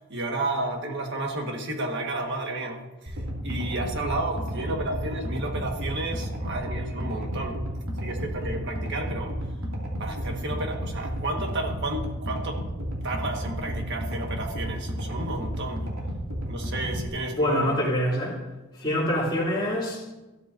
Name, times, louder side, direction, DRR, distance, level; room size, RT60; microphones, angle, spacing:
voice 1, 0.0-7.6 8.0-9.3 10.0-12.6 13.0-15.8 16.5-17.8, right 2 dB, 55° right, 1.6 m, -32 dB
sound 1, 3.1-17.1, equal, 75° right, 2.5 m, -32 dB
voice 2, 17.3-18.4 18.7-20.1, left 1 dB, 20° left, 2.8 m, -26 dB
14.0 x 12.5 x 2.7 m
head